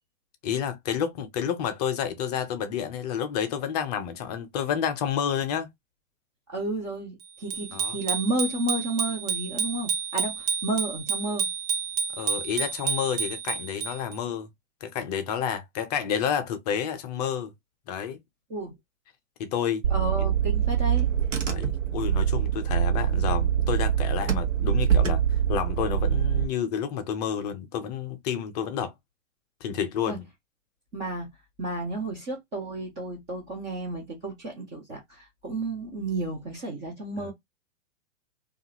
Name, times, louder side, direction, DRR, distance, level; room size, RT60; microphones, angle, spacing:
voice 1, 0.4-5.7 7.7-8.0 12.1-14.5 14.8-17.5 17.9-18.2 19.4-19.8 21.5-28.9 29.6-30.3 37.2-37.3, left 8 dB, 35° left, 0.6 m, -30 dB
voice 2, 6.5-11.5 18.5-18.7 19.9-21.1 30.1-30.2 30.9-31.3 31.6-37.3, right 2 dB, 10° right, 0.3 m, -32 dB
Bicycle bell, 7.5-14.2, right 6 dB, 50° right, 0.9 m, -30 dB
Car / Engine, 19.8-26.5, right 9 dB, 80° right, 0.9 m, -24 dB
2.6 x 2.4 x 2.8 m
figure-of-eight pair, 110°, 37 cm